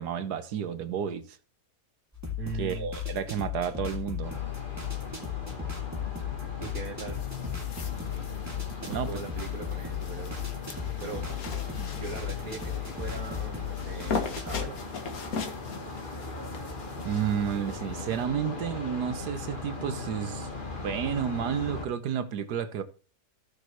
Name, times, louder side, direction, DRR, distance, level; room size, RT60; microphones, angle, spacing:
voice 1, 0.0-1.4 2.6-4.3 8.8-9.1 11.7-11.9 17.0-22.8, right 8 dB, 85° right, 1.5 m, -31 dB
sound 1, 2.1-14.7, left 9 dB, 10° right, 2.5 m, -36 dB
voice 2, 2.4-2.9 6.6-7.2 8.8-10.4 11.0-11.3 11.5-11.6 11.9-14.8, right 5 dB, 65° right, 1.9 m, -40 dB
sound 2, 4.2-21.9, left 3 dB, 35° left, 1.6 m, -39 dB
sound 3, 7.1-18.3, left 4 dB, 65° left, 1.8 m, -40 dB
15.5 x 6.5 x 3.0 m
omnidirectional pair, 1.7 m